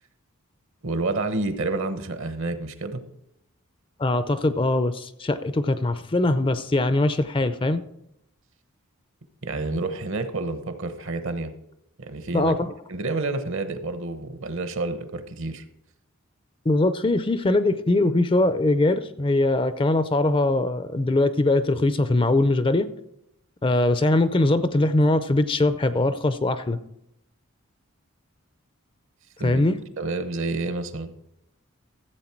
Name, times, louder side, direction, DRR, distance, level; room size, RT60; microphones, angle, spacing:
voice 1, 0.8-3.0 9.4-11.5 12.0-12.6 12.9-15.6 29.4-29.6 30.0-31.1, right 3 dB, 60° right, 10 dB, 1.0 m, -29 dB
voice 2, 4.0-7.8 12.3-12.7 16.7-22.9 23.6-26.8 29.4-29.8, left 2 dB, 25° left, 12 dB, 0.5 m, -22 dB
14.0 x 7.9 x 4.5 m, 0.80 s
head